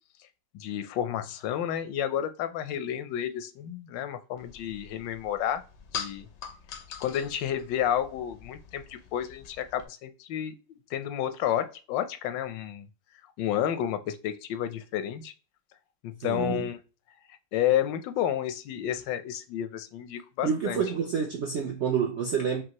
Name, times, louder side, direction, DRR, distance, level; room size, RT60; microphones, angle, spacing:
voice 1, 0.5-5.6 5.9-6.3 7.0-10.6 10.9-12.9 13.4-15.3 16.0-16.8 17.5-20.8, left 10 dB, 85° left, 1.3 m, -31 dB
sound 1, 4.4-9.9, left 7 dB, 65° left, 0.6 m, -43 dB
voice 2, 16.2-16.6 20.4-22.6, right 6 dB, 70° right, 0.6 m, -28 dB
5.5 x 2.6 x 2.9 m
omnidirectional pair, 1.9 m